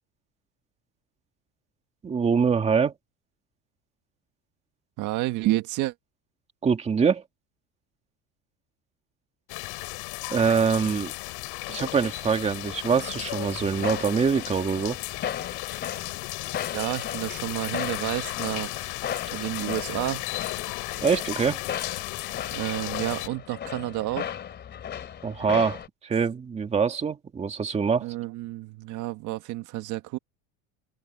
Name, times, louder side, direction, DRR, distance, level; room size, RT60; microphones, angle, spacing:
voice 1, 2.0-2.9 6.6-7.2 10.3-11.1 11.7-15.0 21.0-21.6 25.2-28.1, right 6 dB, 15° right, 2.1 m, -24 dB
voice 2, 5.0-5.9 16.7-18.9 19.3-20.3 22.5-24.3 28.0-30.2, right 17 dB, 50° right, 1.9 m, -30 dB
sound 1, 9.5-23.3, left 25 dB, 65° left, 3.3 m, -35 dB
sound 2, 12.3-25.9, left 9 dB, 25° left, 2.9 m, -37 dB
cardioid pair, 170°, 38 cm